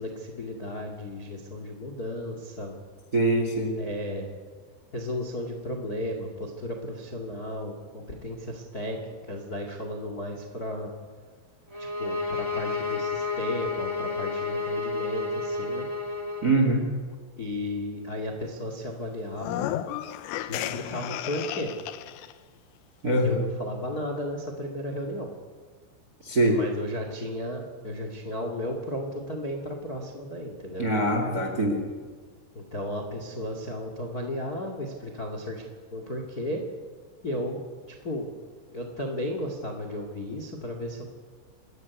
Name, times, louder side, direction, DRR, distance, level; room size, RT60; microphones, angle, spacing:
voice 1, 0.0-2.7 3.8-4.3 4.9-10.9 11.8-15.9 17.4-19.6 20.5-21.7 23.1-25.3 26.5-30.9 32.5-35.6 35.9-36.6 37.2-37.6 37.9-38.3 38.7-41.0, left 1 dB, 40° left, 3 dB, 1.4 m, -34 dB
voice 2, 3.1-3.7 16.4-16.9 23.0-23.4 26.2-26.6 30.8-31.8, right 1 dB, 30° right, 3 dB, 1.7 m, -23 dB
sound 1, 11.7-16.6, left 4 dB, 15° right, 1.0 m, -31 dB
sound 2, 19.3-22.3, left 12 dB, 80° left, 3.4 m, -33 dB
28.0 x 13.5 x 9.6 m, 1.5 s
omnidirectional pair, 5.8 m